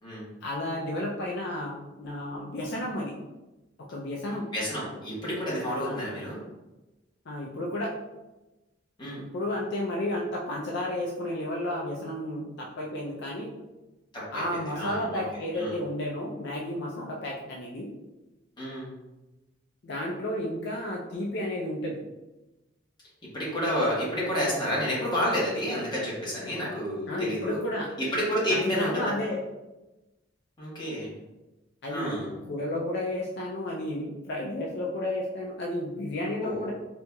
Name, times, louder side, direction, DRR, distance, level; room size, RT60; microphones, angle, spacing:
voice 1, 0.4-3.1 3.8-4.5 5.8-6.1 7.3-7.9 9.2-13.5 14.3-17.9 19.8-22.0 27.1-27.9 28.5-29.4 31.8-32.2 32.4-36.7, left 1 dB, 65° left, -3 dB, 0.5 m, -32 dB
voice 2, 4.5-6.4 9.0-9.2 14.1-14.4 14.7-15.2 15.5-15.7 18.6-18.9 23.3-27.6 28.0-29.1 30.6-31.1 31.9-32.3 36.4-36.7, equal, 25° left, -7 dB, 1.3 m, -30 dB
4.3 x 2.8 x 2.3 m, 1.1 s
head